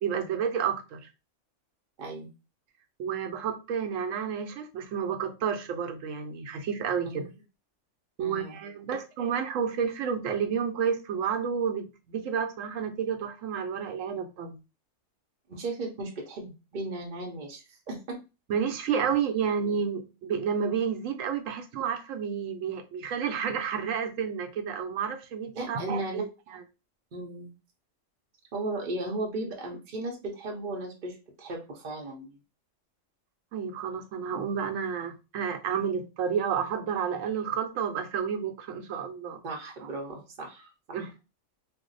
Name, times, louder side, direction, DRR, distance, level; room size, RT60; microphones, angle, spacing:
voice 1, 0.0-1.0 3.0-7.3 8.2-14.6 18.5-26.6 33.5-39.4 39.8-39.9 40.9-41.1, right 7 dB, 80° right, 0.9 m, -30 dB
voice 2, 2.0-2.3 7.0-7.3 8.2-8.6 15.5-18.2 25.5-26.2 27.1-27.5 28.5-32.4 39.4-41.0, right 2 dB, 50° right, 0.6 m, -36 dB
2.6 x 2.0 x 3.8 m
omnidirectional pair, 1.3 m